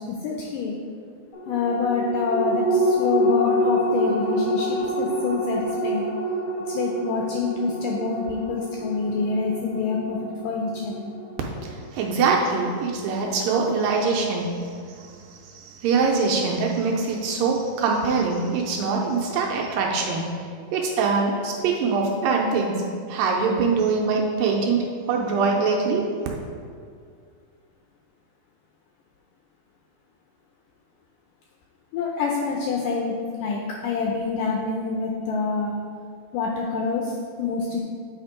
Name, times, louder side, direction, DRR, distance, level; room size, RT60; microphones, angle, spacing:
voice 1, 0.2-0.7 1.5-6.1 6.7-10.2 10.4-11.1 31.9-33.2 33.4-35.7 36.3-37.8, left 4 dB, 85° left, -1 dB, 1.9 m, -26 dB
sound 1, 1.3-12.1 12.5-12.6, equal, 65° left, 1.6 m, -26 dB
voice 2, 11.6-20.3 20.7-26.1, right 4 dB, 80° right, -1 dB, 2.2 m, -23 dB
8.0 x 4.3 x 4.8 m, 2.2 s
omnidirectional pair, 4.4 m